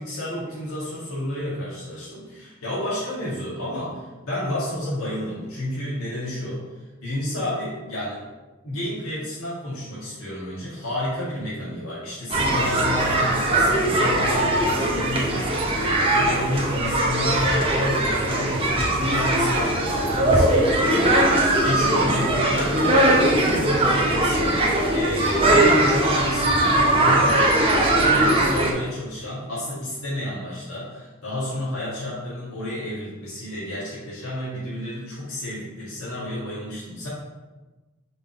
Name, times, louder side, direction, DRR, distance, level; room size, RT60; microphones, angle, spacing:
voice 1, 0.0-6.6 7.0-8.2 8.6-27.6 27.9-37.1, left 1 dB, 85° left, -8 dB, 1.8 m, -30 dB
sound 1, 12.3-28.7, right 1 dB, 25° right, 0.9 m, -20 dB
5.2 x 3.9 x 5.0 m, 1.2 s
head